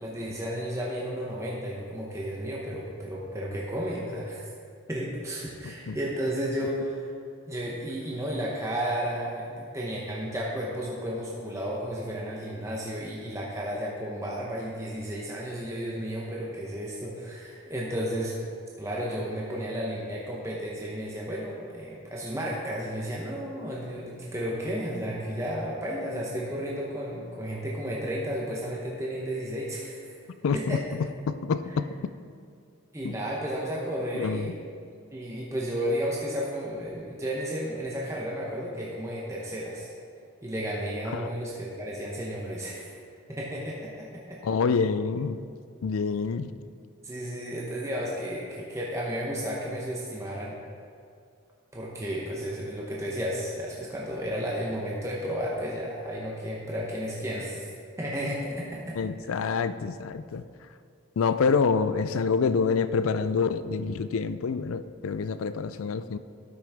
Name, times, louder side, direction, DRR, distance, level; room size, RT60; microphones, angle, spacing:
voice 1, 0.0-4.4 4.9-7.1 7.5-18.4 18.8-30.2 30.5-30.8 32.9-34.5 35.1-39.9 40.4-42.9 43.3-44.4 47.0-50.5 51.7-57.7 58.0-59.0, equal, 15° right, -4 dB, 0.8 m, -33 dB
voice 2, 5.6-6.0 30.4-32.1 33.0-33.2 34.1-34.5 41.1-41.3 44.4-45.4 45.8-46.5 59.0-60.4 61.2-66.2, left 5 dB, 75° left, 13 dB, 0.4 m, -27 dB
12.5 x 6.2 x 3.5 m, 2.3 s
head